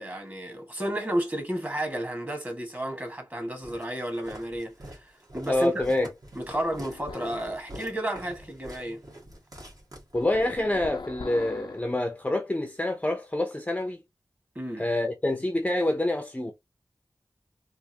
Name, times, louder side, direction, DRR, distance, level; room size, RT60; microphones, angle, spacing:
voice 1, 0.0-5.8 6.3-9.0 14.5-14.8, right 1 dB, 25° right, 1.4 m, -32 dB
Walk footsteps, 3.6-10.6, right 1 dB, 55° right, 1.5 m, -45 dB
voice 2, 5.5-6.1 10.1-14.0 14.8-16.5, left 1 dB, 15° left, 0.6 m, -27 dB
sound 1, 6.5-7.6 10.2-11.9, left 4 dB, 70° left, 0.5 m, -41 dB
3.4 x 2.6 x 2.7 m
wide cardioid pair, 75°, 8 cm